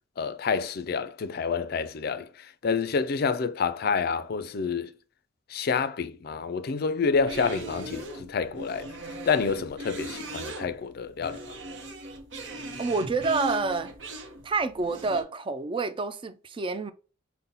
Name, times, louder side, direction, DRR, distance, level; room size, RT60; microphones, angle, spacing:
voice 1, 0.2-4.9 5.5-8.9 9.3-11.4, left 5 dB, 50° left, 0.4 m, -28 dB
sound 1, 7.1-15.2, right 1 dB, 65° right, 0.8 m, -39 dB
voice 2, 12.8-13.9 14.4-16.9, right 4 dB, 25° right, 0.3 m, -28 dB
5.6 x 2.1 x 3.9 m
head